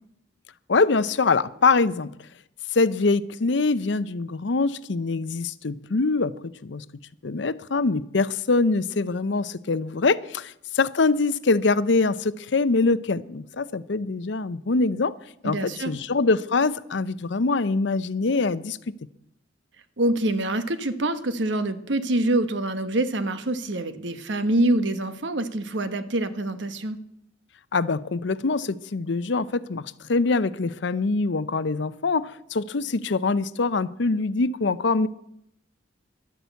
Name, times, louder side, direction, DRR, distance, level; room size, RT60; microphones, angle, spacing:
voice 1, 0.7-2.1 2.7-6.8 7.2-15.1 15.4-18.8 27.7-35.1, left 3 dB, 70° left, 16 dB, 0.6 m, -24 dB
voice 2, 15.4-15.9 20.0-27.0, right 1 dB, 75° right, 11 dB, 1.1 m, -25 dB
11.5 x 11.0 x 8.2 m, 0.79 s
head